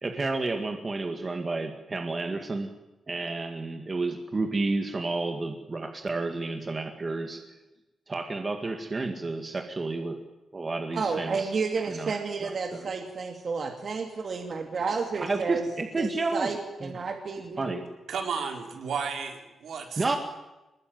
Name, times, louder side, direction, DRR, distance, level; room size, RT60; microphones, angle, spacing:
voice 1, 0.0-2.7 3.1-7.4 8.1-10.2 10.5-11.5 11.9-12.1 12.4-12.9 15.2-16.5 16.8-16.9 17.6-17.8 20.0-20.2, right 3 dB, 25° right, 4 dB, 2.1 m, -31 dB
voice 2, 10.9-15.7 16.0-17.7, right 4 dB, 40° right, 3 dB, 2.7 m, -31 dB
voice 3, 18.1-20.0, right 5 dB, 65° right, 4 dB, 4.4 m, -33 dB
25.0 x 21.0 x 9.3 m, 1.0 s
wide cardioid pair, 170°, 0 cm